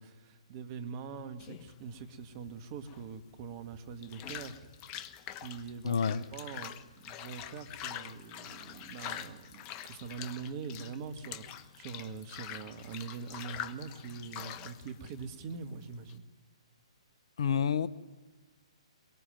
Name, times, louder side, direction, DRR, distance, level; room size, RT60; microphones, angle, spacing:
voice 1, 0.0-4.6 5.3-16.3, right 5 dB, 35° right, 1.8 m, -43 dB
sound 1, 1.4-16.2, left 10 dB, 25° left, 1.0 m, -45 dB
voice 2, 5.8-6.2 17.4-17.9, left 7 dB, 55° left, 0.8 m, -28 dB
23.0 x 22.5 x 9.2 m
figure-of-eight pair, 125°, 3 cm